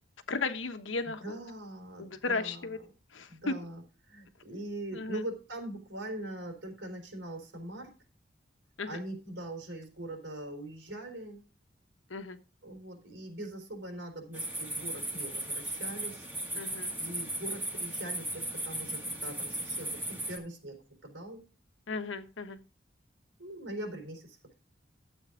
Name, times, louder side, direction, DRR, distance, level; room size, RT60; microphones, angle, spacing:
voice 1, 0.3-1.4 2.0-2.8 3.1-3.5 4.9-5.2 8.8-8.9 12.1-12.4 16.6-16.9 21.9-22.6, left 3 dB, 85° left, 9 dB, 1.2 m, -35 dB
voice 2, 1.0-2.9 3.3-7.9 8.9-11.5 12.6-16.3 17.0-21.4 23.4-24.5, right 1 dB, 75° right, 3 dB, 4.0 m, -42 dB
sound 1, 14.3-20.4, right 1 dB, 10° right, 1.8 m, -36 dB
13.0 x 8.1 x 3.8 m, 0.33 s
head